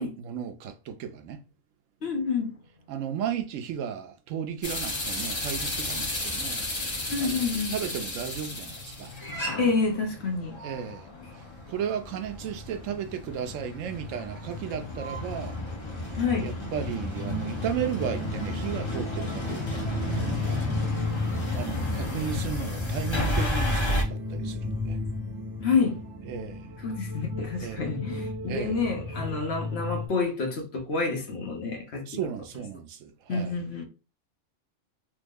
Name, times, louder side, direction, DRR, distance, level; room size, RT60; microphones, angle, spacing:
voice 1, 0.0-1.4 2.9-6.7 7.2-9.1 10.6-11.1 11.7-15.6 16.4-20.6 21.5-25.0 26.2-26.7 27.6-27.9 28.5-28.8 32.1-33.5, right 8 dB, 90° right, 1.0 m, -35 dB
voice 2, 2.0-2.5 7.1-7.8 9.6-10.6 16.2-16.5 25.6-26.0 26.8-32.1 33.3-33.8, left 4 dB, 60° left, 1.1 m, -28 dB
sound 1, 4.6-24.0, left 1 dB, 25° left, 0.7 m, -33 dB
sound 2, 15.6-30.1, left 2 dB, 40° right, 0.3 m, -34 dB
3.2 x 2.0 x 3.5 m
omnidirectional pair, 1.3 m